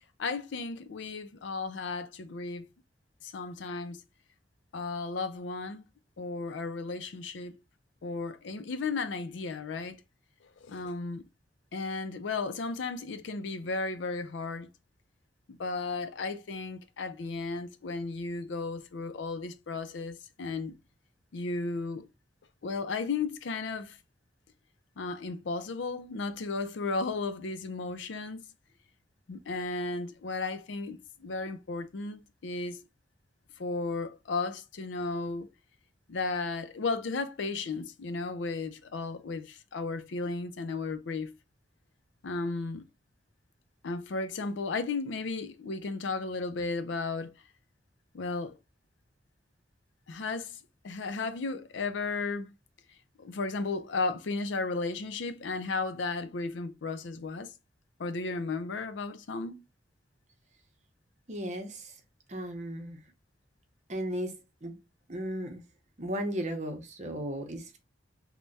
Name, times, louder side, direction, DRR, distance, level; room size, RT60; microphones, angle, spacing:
voice 1, 0.2-2.7 3.2-4.0 4.7-5.8 6.2-7.5 8.0-10.0 10.6-11.2 11.7-14.7 15.5-20.8 21.3-22.1 22.6-24.0 25.0-28.4 29.3-32.8 33.6-35.5 36.1-41.3 42.2-42.8 43.8-47.3 48.1-48.5 50.1-50.6 50.8-52.5 53.2-57.5 58.0-59.6, left 3 dB, 80° left, 0.5 m, -34 dB
voice 2, 61.3-61.8 62.3-63.0 63.9-64.3 64.6-64.8 65.1-65.6 66.0-67.8, equal, 40° right, 0.8 m, -35 dB
3.4 x 2.2 x 3.9 m
head